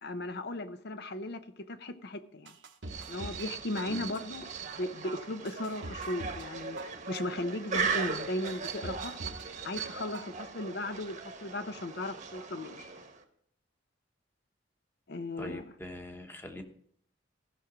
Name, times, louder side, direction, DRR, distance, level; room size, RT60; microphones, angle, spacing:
voice 1, 0.0-2.6 3.1-9.2 9.6-12.8 15.1-15.6, left 1 dB, 60° left, 0.8 m, -37 dB
sound 1, 2.5-3.5 3.8-4.4 4.9-5.0 5.5-6.5 6.8-7.4 7.9-8.0 8.5-9.5 9.8-10.4 10.7-10.8, right 1 dB, 70° right, 1.1 m, -44 dB
sound 2, 2.8-13.2, right 5 dB, 40° right, 1.1 m, -38 dB
voice 2, 15.4-16.6, left 1 dB, 10° left, 1.1 m, -42 dB
15.5 x 6.0 x 5.0 m
head